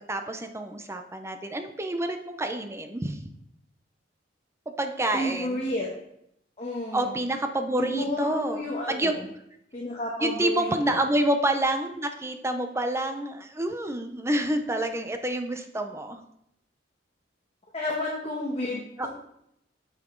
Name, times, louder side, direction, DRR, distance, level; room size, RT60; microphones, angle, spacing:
voice 1, 0.0-3.3 4.8-5.6 6.9-8.6 8.9-9.1 10.2-16.2 19.0-19.1, right 1 dB, 15° right, 6 dB, 0.6 m, -28 dB
voice 2, 5.1-5.9 6.6-7.1 7.8-9.2 9.7-11.0 17.7-19.1, left 1 dB, 35° left, -3 dB, 1.2 m, -31 dB
8.8 x 5.8 x 3.8 m, 0.76 s
head